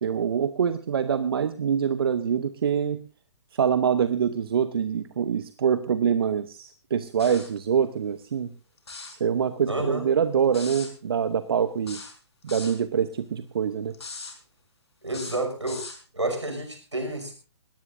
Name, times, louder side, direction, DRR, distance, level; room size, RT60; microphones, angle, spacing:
voice 1, 0.0-3.0 3.5-8.5 9.1-12.0 12.4-13.9, right 7 dB, 55° right, 12 dB, 1.0 m, -25 dB
sound 1, 7.2-7.6 8.8-9.2 10.5-10.9 11.9-12.8 13.9-14.4 15.1-16.0, left 4 dB, 70° left, 4.9 m, -39 dB
voice 2, 9.7-10.1 15.0-15.8 16.1-17.3, right 2 dB, 85° right, 5 dB, 6.1 m, -29 dB
20.5 x 18.0 x 2.7 m, 0.32 s
figure-of-eight pair, 125°, 15 cm